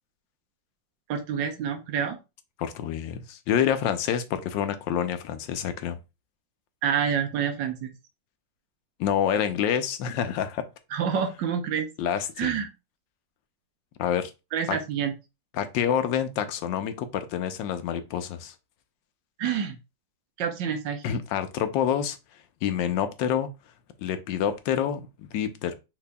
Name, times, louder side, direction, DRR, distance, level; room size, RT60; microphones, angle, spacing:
voice 1, 1.1-2.2 6.8-7.9 10.9-11.9 12.4-12.7 14.5-15.1 19.4-19.8 20.4-21.0, right 7 dB, 85° right, 1.5 m, -27 dB
voice 2, 2.6-6.0 9.0-10.7 12.0-12.6 14.0-14.3 14.7-14.8 15.5-18.5 21.0-22.2 22.6-23.5 24.0-25.7, left 9 dB, 85° left, 1.4 m, -27 dB
5.8 x 3.6 x 2.2 m
omnidirectional pair, 1.9 m